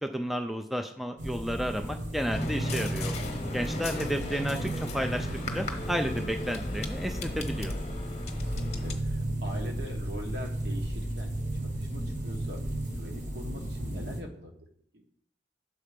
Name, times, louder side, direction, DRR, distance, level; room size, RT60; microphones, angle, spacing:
voice 1, 0.0-3.1 3.5-5.3 5.5-7.7, equal, ahead, 5 dB, 0.3 m, -32 dB
sound 1, 1.2-14.2, right 1 dB, 45° right, 1.1 m, -34 dB
sound 2, 2.3-8.9, left 2 dB, 35° left, 0.9 m, -37 dB
voice 2, 8.3-11.3 11.6-12.6 13.0-14.7, equal, 70° right, 2 dB, 1.3 m, -41 dB
6.7 x 4.3 x 5.0 m, 0.66 s
head